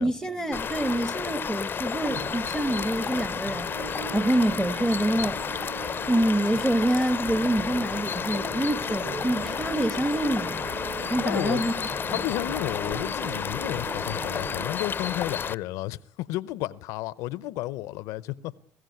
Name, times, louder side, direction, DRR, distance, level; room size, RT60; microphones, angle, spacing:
voice 1, 0.0-5.4 6.1-10.7 11.1-11.7 12.1-12.2, right 1 dB, 10° right, 1.4 m, -26 dB
sound 1, 0.5-15.5, left 6 dB, 40° left, 0.7 m, -31 dB
sound 2, 2.1-14.7, right 6 dB, 75° right, 1.8 m, -41 dB
voice 2, 11.2-11.7 12.1-18.6, left 16 dB, 80° left, 0.8 m, -32 dB
20.5 x 15.5 x 9.4 m
supercardioid pair, 70°, 5 cm